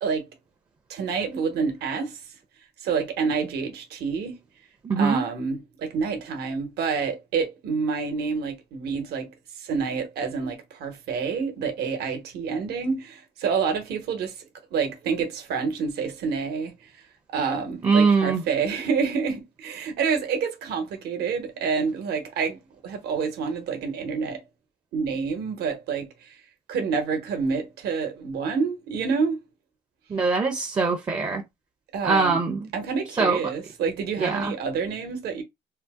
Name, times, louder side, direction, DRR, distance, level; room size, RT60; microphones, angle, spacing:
voice 1, 0.9-2.2 2.8-4.4 5.0-9.3 9.6-14.4 14.7-16.7 17.3-22.6 22.8-24.4 24.9-26.3 26.7-29.4 31.9-32.4 32.7-35.4, right 5 dB, 70° right, 1.0 m, -28 dB
voice 2, 4.8-5.2 17.8-18.4 30.1-31.4 32.0-32.7 33.2-33.5 34.2-34.5, right 4 dB, 25° right, 0.5 m, -22 dB
2.8 x 2.0 x 3.4 m
cardioid pair, 110°, 17 cm